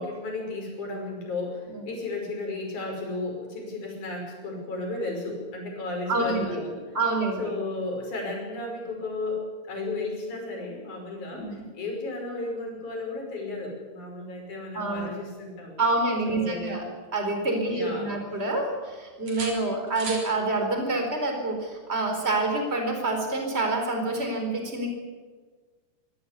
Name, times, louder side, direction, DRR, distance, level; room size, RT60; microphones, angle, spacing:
voice 1, 0.0-6.8 7.4-15.8 16.3-16.7 17.7-18.3, left 2 dB, 50° left, 1 dB, 6.9 m, -34 dB
voice 2, 6.1-6.6 6.9-7.4 11.3-11.7 14.7-15.1 15.8-16.8 17.1-24.9, right 2 dB, 15° right, 3 dB, 4.4 m, -27 dB
sound 1, 16.1-17.7 18.0-18.9 19.3-20.3 22.2-22.4, right 3 dB, 45° right, 4.8 m, -41 dB
24.0 x 16.5 x 8.3 m, 1.4 s
omnidirectional pair, 4.4 m